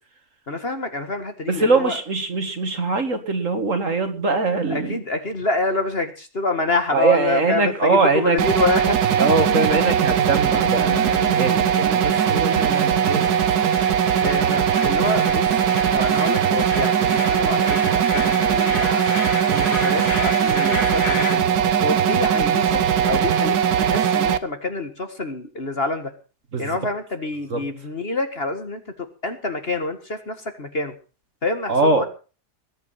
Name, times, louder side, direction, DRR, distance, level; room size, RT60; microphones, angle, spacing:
voice 1, 0.5-2.0 4.7-9.2 14.2-15.5 15.9-19.0 19.5-21.4 21.8-26.1 26.6-30.9 31.4-32.0, left 2 dB, 35° left, 7 dB, 1.8 m, -27 dB
voice 2, 1.5-5.0 6.9-8.4 9.2-13.3 26.5-26.8 27.5-27.6 31.7-32.1, right 3 dB, 50° right, 8 dB, 2.3 m, -22 dB
sound 1, 7.5-21.3, left 2 dB, 70° left, 5.2 m, -34 dB
sound 2, 8.4-24.4, right 8 dB, 75° right, 1.4 m, -20 dB
20.5 x 9.3 x 5.7 m, 0.36 s
omnidirectional pair, 1.7 m